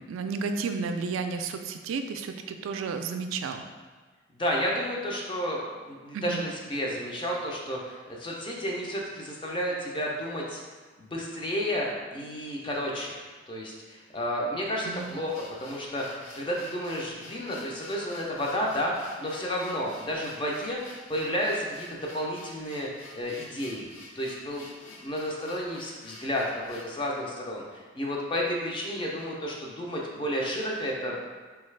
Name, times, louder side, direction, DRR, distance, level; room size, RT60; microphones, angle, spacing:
voice 1, 0.0-3.6 6.1-6.5 14.9-15.2, right 4 dB, 90° right, 8 dB, 0.3 m, -32 dB
voice 2, 4.3-10.6 11.0-13.1 13.5-20.8 21.1-22.9 23.1-23.9 24.2-31.2, equal, 25° left, -2 dB, 0.4 m, -31 dB
sound 1, 14.8-27.0, left 2 dB, 90° left, 0.7 m, -50 dB
3.8 x 2.3 x 3.2 m, 1.4 s
head